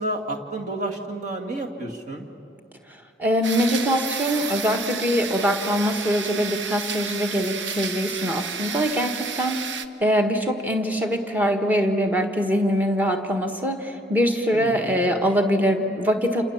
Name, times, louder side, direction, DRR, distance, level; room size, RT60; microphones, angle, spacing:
voice 1, 0.0-2.3 14.5-15.0, right 1 dB, 40° right, 0 dB, 2.4 m, -31 dB
voice 2, 3.2-16.4, equal, 10° right, 4 dB, 1.4 m, -23 dB
sound 1, 3.4-9.9, right 6 dB, 80° right, 1.0 m, -31 dB
29.0 x 28.0 x 7.2 m, 2.8 s
head